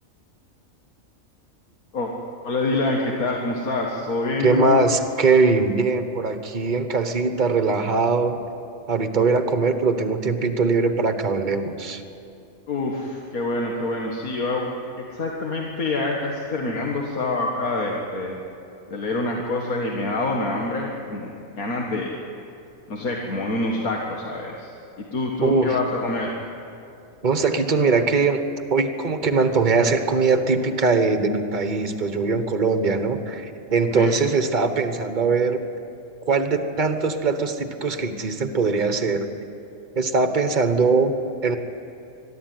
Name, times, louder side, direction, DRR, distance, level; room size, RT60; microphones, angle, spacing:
voice 1, 2.4-4.9 12.7-14.7 15.1-18.4 18.9-22.1 22.9-24.7 25.0-26.3 33.9-34.1, left 2 dB, 90° left, -1 dB, 2.1 m, -26 dB
voice 2, 4.4-8.4 8.9-12.0 25.4-25.8 27.2-28.4 28.7-35.6 36.3-39.3 39.9-41.6, right 4 dB, 35° right, 7 dB, 1.3 m, -21 dB
22.5 x 13.0 x 9.5 m, 2.7 s
omnidirectional pair, 1.5 m